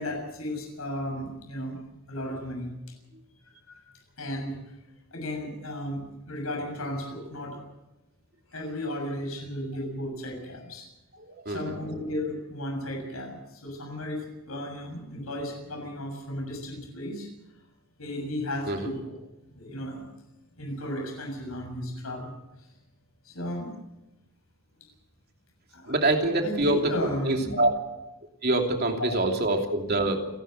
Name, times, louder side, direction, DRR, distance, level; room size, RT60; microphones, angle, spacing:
voice 1, 0.0-1.8 2.1-2.7 3.7-3.9 4.2-4.7 5.1-7.6 8.5-10.9 11.5-17.3 18.0-19.0 19.4-20.0 20.6-22.7 23.2-23.7 25.7-25.9 26.4-27.6 29.0-29.1, left 1 dB, 85° left, 2 dB, 7.0 m, -34 dB
voice 2, 11.2-11.8 18.7-18.9 25.9-27.7 28.4-30.3, right 2 dB, 45° right, 3 dB, 2.9 m, -25 dB
29.0 x 11.0 x 7.9 m, 0.96 s
head